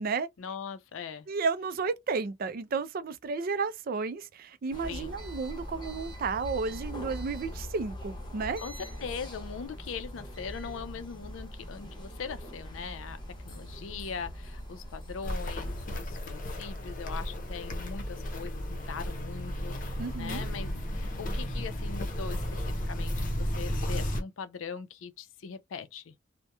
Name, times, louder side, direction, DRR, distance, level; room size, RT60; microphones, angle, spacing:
voice 1, 0.4-1.3 4.9-5.1 8.6-26.1, left 6 dB, 90° left, 0.4 m, -41 dB
voice 2, 1.3-8.6 20.0-20.5, right 4 dB, 50° right, 0.4 m, -32 dB
sound 1, 4.7-15.9, equal, 25° left, 0.9 m, -42 dB
Walk footsteps, 15.2-24.2, equal, 45° left, 0.7 m, -34 dB
2.8 x 2.1 x 2.2 m
head